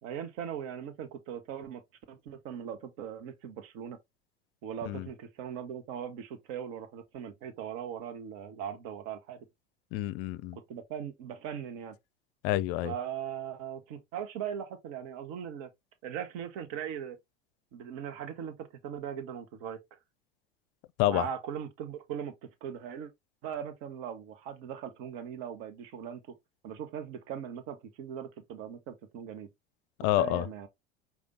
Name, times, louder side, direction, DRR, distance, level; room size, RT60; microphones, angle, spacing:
voice 1, 0.0-1.8 2.1-4.0 4.6-9.5 10.7-11.9 12.8-15.7 16.0-17.2 17.7-19.8 21.0-22.3 22.6-23.1 23.4-26.4 26.6-29.5 30.2-30.7, right 8 dB, 55° right, 1.0 m, -39 dB
voice 2, 9.9-10.6 12.4-12.9 21.0-21.2 30.0-30.5, left 15 dB, 50° left, 0.5 m, -28 dB
5.1 x 2.4 x 3.6 m
hypercardioid pair, 85°, 32 cm